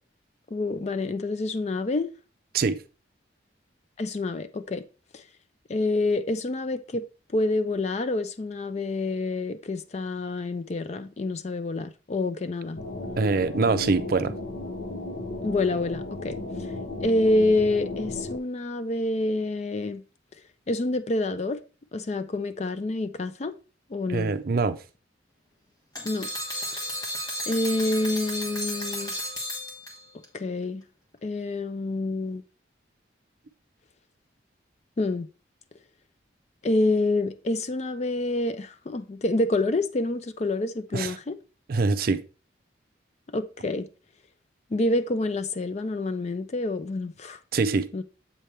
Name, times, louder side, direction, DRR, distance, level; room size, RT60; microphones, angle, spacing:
voice 1, 0.5-2.1 4.0-4.8 5.1-5.2 5.7-7.0 7.3-12.8 15.4-16.4 17.0-20.0 20.7-21.6 21.9-23.5 23.9-24.3 26.0-26.3 27.5-29.1 30.3-30.8 31.2-32.4 35.0-35.3 36.6-41.4 43.3-43.9 44.7-47.4 47.9-48.0, left 2 dB, 35° left, 0.4 m, -27 dB
sound 1, 12.8-18.4, left 2 dB, 65° left, 1.0 m, -35 dB
voice 2, 13.2-14.3 24.1-24.8 40.9-41.2 41.7-42.2 47.5-47.9, right 4 dB, 50° right, 0.5 m, -24 dB
sound 2, 25.9-30.2, left 1 dB, 20° left, 1.3 m, -33 dB
7.4 x 3.4 x 4.3 m
head